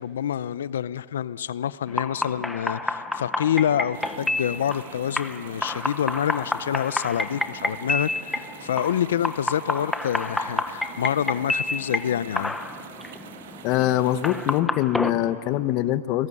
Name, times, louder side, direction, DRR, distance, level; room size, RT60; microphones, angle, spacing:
voice 1, 0.0-12.5, left 9 dB, 90° left, 0.5 m, -27 dB
sound 1, 1.9-15.1, left 2 dB, 5° left, 0.8 m, -30 dB
sound 2, 3.9-14.6, right 10 dB, 65° right, 1.5 m, -45 dB
voice 2, 13.6-16.3, left 13 dB, 30° left, 0.8 m, -23 dB
28.5 x 20.0 x 9.8 m
supercardioid pair, 170°, 0 cm